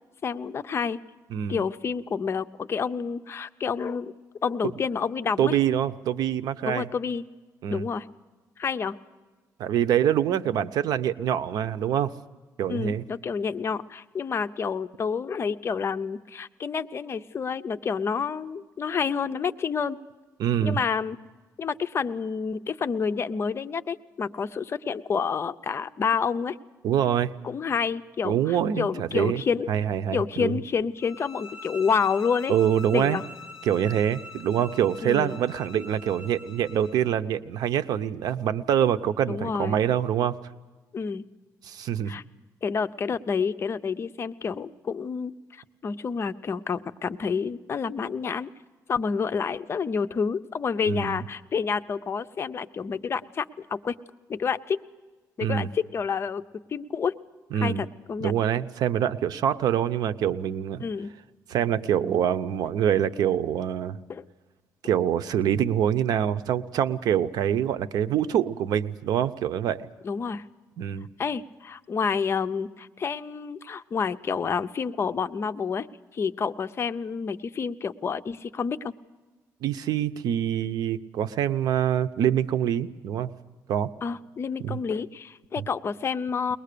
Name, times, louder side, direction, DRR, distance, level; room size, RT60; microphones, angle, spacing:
voice 1, 0.2-1.0 1.5-4.1 4.4-5.6 6.6-7.2 7.7-8.1 8.6-9.0 12.7-20.0 20.6-21.2 21.6-26.6 27.4-29.7 30.1-32.5 32.9-33.2 35.0-35.4 39.3-39.8 40.9-41.2 42.1-42.2 42.6-48.5 48.9-54.0 54.3-54.8 55.4-56.4 56.7-57.2 57.6-58.3 60.8-61.1 64.1-64.2 70.0-70.4 71.2-75.9 76.1-78.9 84.0-86.6, left 6 dB, 40° left, 11 dB, 0.7 m, -29 dB
voice 2, 1.3-1.6 5.4-6.9 7.6-7.8 9.6-12.1 12.6-13.0 20.4-20.8 26.8-27.3 28.2-29.4 29.7-30.6 32.5-33.2 33.6-40.3 41.6-42.1 50.9-51.2 55.4-55.7 57.5-57.8 58.2-60.8 61.5-64.0 64.8-69.8 70.8-71.1 79.6-83.3 83.7-83.9 84.6-84.8 85.6-85.7, right 9 dB, 85° right, 12 dB, 0.8 m, -25 dB
sound 1, 31.0-37.1, left 3 dB, 5° right, 2.4 m, -44 dB
22.5 x 20.0 x 6.8 m, 1.3 s
cardioid pair, 120°, 7 cm